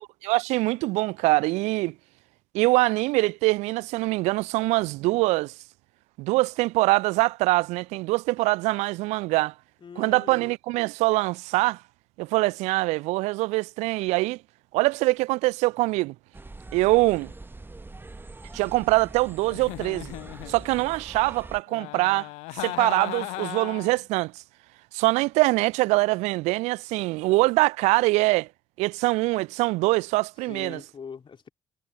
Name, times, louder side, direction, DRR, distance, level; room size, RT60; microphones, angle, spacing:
voice 1, 0.2-1.9 2.5-5.5 6.2-9.5 10.0-11.8 12.2-14.4 14.7-16.1 16.7-17.3 18.5-20.1 20.5-22.3 22.6-24.3 24.9-28.5 28.8-30.8, right 22 dB, 65° right, 0.5 m, -23 dB
voice 2, 9.8-10.5 30.5-31.5, left 6 dB, 40° left, 3.5 m, -42 dB
sound 1, 16.3-21.6, right 2 dB, 15° right, 1.2 m, -43 dB
Giggle, 19.4-20.9 21.7-24.0, left 24 dB, 65° left, 0.5 m, -37 dB
figure-of-eight pair, 45°, 13 cm